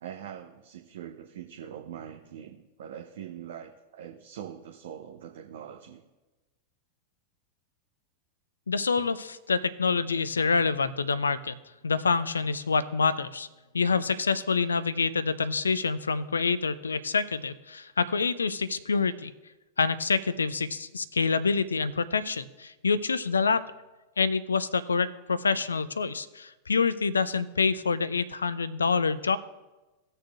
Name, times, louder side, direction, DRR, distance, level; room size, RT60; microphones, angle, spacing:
voice 1, 0.0-6.0 9.0-9.1, right 9 dB, 60° right, 2 dB, 0.7 m, -43 dB
voice 2, 8.7-11.5 11.8-13.5 13.7-19.3 19.8-23.6 24.2-29.4, left 4 dB, 75° left, 16 dB, 0.4 m, -27 dB
18.0 x 6.6 x 2.4 m, 1.1 s
figure-of-eight pair, 90°, 0 cm